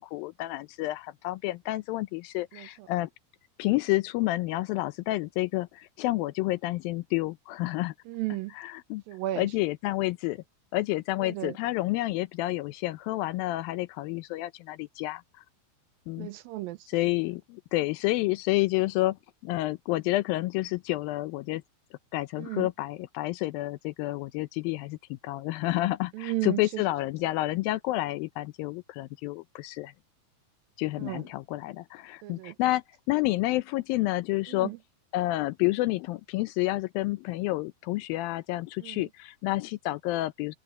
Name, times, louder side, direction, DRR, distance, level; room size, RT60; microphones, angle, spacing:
voice 1, 0.0-3.1 3.6-7.9 8.6-9.0 9.4-10.4 10.7-15.2 16.1-16.3 16.9-19.2 19.4-21.6 22.1-29.9 30.8-34.7 35.1-40.6, left 18 dB, 80° left, 2.3 m, -29 dB
voice 2, 2.5-2.9 8.1-8.5 9.1-9.5 11.2-11.6 16.2-16.8 22.4-22.7 26.1-26.8 31.0-31.3 32.2-32.6 34.5-34.8 38.8-39.1, right 16 dB, 80° right, 2.3 m, -34 dB
omnidirectional pair, 4.4 m